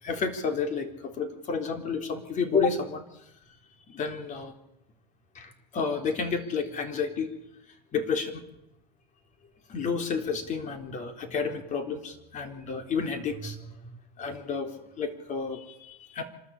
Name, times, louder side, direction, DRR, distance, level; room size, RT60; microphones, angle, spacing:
voice 1, 0.0-3.0 3.9-4.5 5.3-7.3 7.9-8.4 9.7-13.9 14.2-16.2, left 5 dB, 35° left, 6 dB, 3.9 m, -31 dB
26.5 x 13.0 x 8.7 m, 0.87 s
hypercardioid pair, 100°, 21 cm